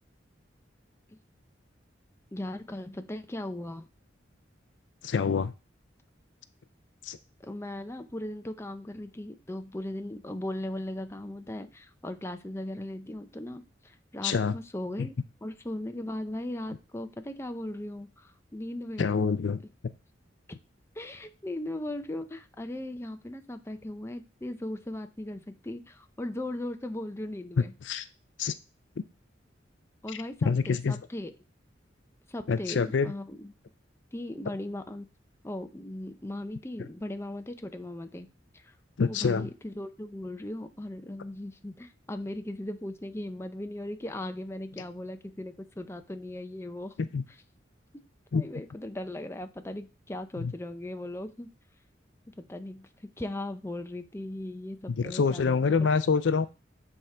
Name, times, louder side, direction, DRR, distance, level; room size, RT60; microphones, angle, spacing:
voice 1, 2.3-3.9 7.4-15.1 15.4-19.1 20.5-20.6 21.0-27.7 30.0-31.3 32.3-33.5 34.1-35.1 35.4-38.3 38.5-38.7 39.0-46.9 48.3-51.5 52.4-52.9 53.2-55.9, left 1 dB, 15° left, 7 dB, 0.6 m, -38 dB
voice 2, 5.0-5.5 7.0-7.2 14.2-14.5 15.0-15.1 19.0-19.6 27.6-28.0 28.4-28.5 30.4-30.9 32.5-33.1 39.0-39.5 47.0-47.2 48.3-48.4 50.4-50.5 55.0-56.5, left 5 dB, 70° left, 13 dB, 0.5 m, -26 dB
9.1 x 3.7 x 4.4 m, 0.30 s
head